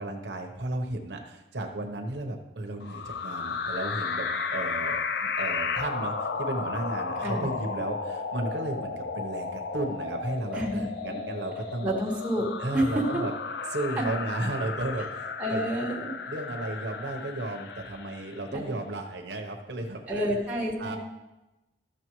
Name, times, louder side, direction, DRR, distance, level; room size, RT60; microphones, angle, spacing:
voice 1, 0.0-11.9 12.6-13.3 13.7-15.7 16.3-20.3 20.8-21.0, right 2 dB, 75° right, 3 dB, 0.9 m, -34 dB
sound 1, 2.8-18.5, left 5 dB, 60° left, 0.4 m, -34 dB
voice 2, 10.5-11.1 11.8-12.5 12.7-13.2 14.0-14.1 15.0-15.1 15.4-16.1 18.5-18.8 20.1-21.0, equal, 10° right, -6 dB, 1.7 m, -29 dB
14.0 x 6.4 x 3.1 m, 1.0 s
head